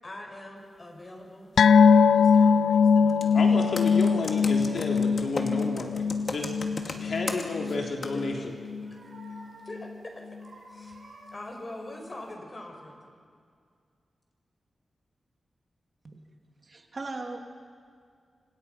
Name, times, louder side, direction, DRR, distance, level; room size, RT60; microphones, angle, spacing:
voice 1, 0.0-4.0 8.1-8.2 8.9-10.3 10.7-11.0 11.3-13.0, left 1 dB, 35° left, 2 dB, 6.0 m, -44 dB
sound 1, 1.6-8.4 8.7-8.9 9.2-9.3, left 5 dB, 90° left, 0.5 m, -22 dB
Computer keyboard, 3.1-3.3 3.8-7.8 8.0-8.1, left 3 dB, 50° left, 2.4 m, -35 dB
voice 2, 3.3-5.9 6.3-6.6 6.8-8.5, left 3 dB, 70° left, 1 dB, 3.6 m, -31 dB
sound 2, 3.6-5.2 8.4-9.9 10.3-12.2 12.7-12.9, right 2 dB, 65° right, 7.6 m, -53 dB
voice 3, 16.6-17.4, right 3 dB, 45° right, 3 dB, 2.7 m, -38 dB
30.0 x 25.5 x 5.8 m, 2.2 s
wide cardioid pair, 85°, 0 cm